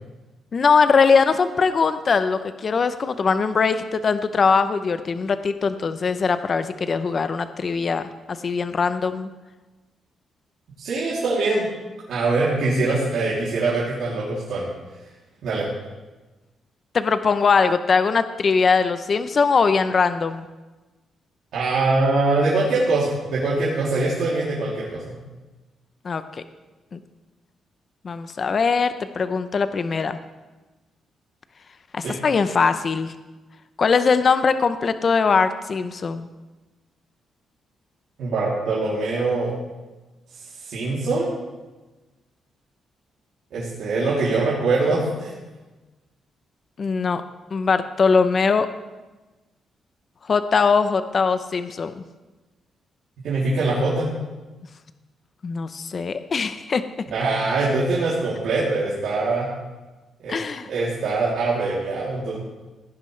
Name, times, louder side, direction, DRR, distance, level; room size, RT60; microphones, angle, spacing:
voice 1, 0.5-8.0 8.3-9.3 16.9-20.5 26.0-26.4 26.9-27.0 28.0-30.2 31.9-33.1 33.8-36.3 46.8-47.2 47.5-48.7 50.3-51.9 55.4-56.8 60.3-60.7, left 5 dB, 40° left, 11 dB, 0.6 m, -21 dB
voice 2, 10.8-11.7 12.1-14.6 15.4-15.7 21.5-25.1 32.0-32.1 38.2-39.5 40.6-41.3 43.5-45.3 53.2-54.1 57.1-59.5 60.2-60.4 60.6-62.4, right 3 dB, 75° right, -8 dB, 3.0 m, -23 dB
16.5 x 10.5 x 3.3 m, 1.2 s
cardioid pair, 110°, 0 cm